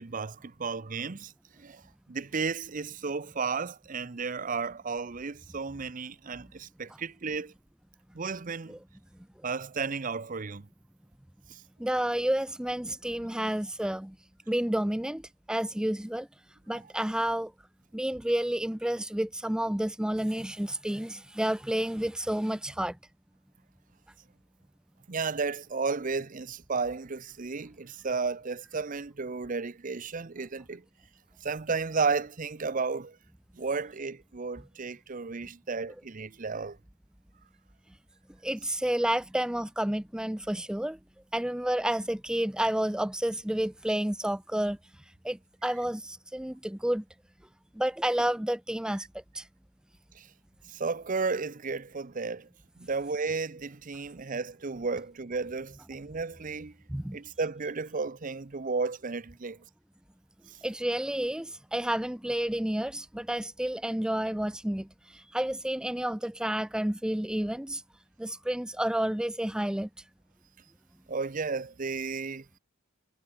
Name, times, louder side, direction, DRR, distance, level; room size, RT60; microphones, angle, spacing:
voice 1, 0.0-1.3 1.6-1.8 2.1-7.5 8.1-8.8 9.4-10.7 11.5-11.6 25.1-30.8 31.4-33.2 33.6-36.8 50.2-50.3 50.7-52.5 52.8-56.7 57.1-59.6 71.1-72.4, right 4 dB, 40° right, 0.7 m, -33 dB
voice 2, 11.8-14.2 14.5-16.3 16.7-17.5 17.9-23.0 38.4-41.0 41.3-44.8 45.2-47.0 47.8-49.1 49.3-49.5 56.9-57.2 60.6-67.8 68.2-69.9, right 1 dB, 5° right, 0.4 m, -30 dB
head